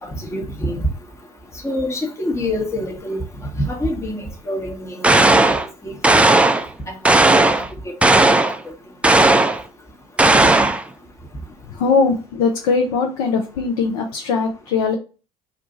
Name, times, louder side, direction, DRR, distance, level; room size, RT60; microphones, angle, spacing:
voice 1, 0.0-0.8 1.6-3.2 3.6-5.6 5.8-6.2 6.9-7.0 7.4-7.6 8.1-8.2 9.3-9.4 10.4-10.5, left 1 dB, 15° left, 0 dB, 0.9 m, -26 dB
sound 1, 5.0-5.7 6.0-6.7 7.0-7.7 8.0-8.6 9.0-9.6 10.2-10.8, right 2 dB, 5° right, 0.3 m, -14 dB
voice 2, 11.7-15.0, left 5 dB, 70° left, 2 dB, 0.6 m, -20 dB
2.5 x 2.4 x 3.9 m, 0.35 s
hypercardioid pair, 70°, 18 cm